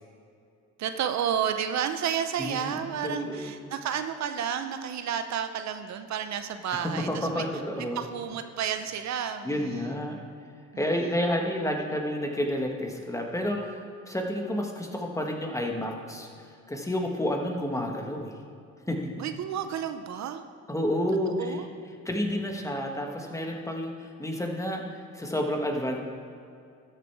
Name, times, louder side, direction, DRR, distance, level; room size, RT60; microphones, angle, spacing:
voice 1, 0.8-7.4 7.8-10.0 10.7-11.1 19.2-20.4 21.3-21.7, right 8 dB, 65° right, 8 dB, 0.7 m, -31 dB
voice 2, 2.4-3.5 6.7-8.0 9.4-10.2 10.7-16.3 16.7-18.4 18.9-19.1 20.7-21.6 22.0-26.0, equal, 10° left, 1 dB, 1.5 m, -30 dB
12.5 x 6.8 x 4.7 m, 2.4 s
cardioid pair, 90°, 30 cm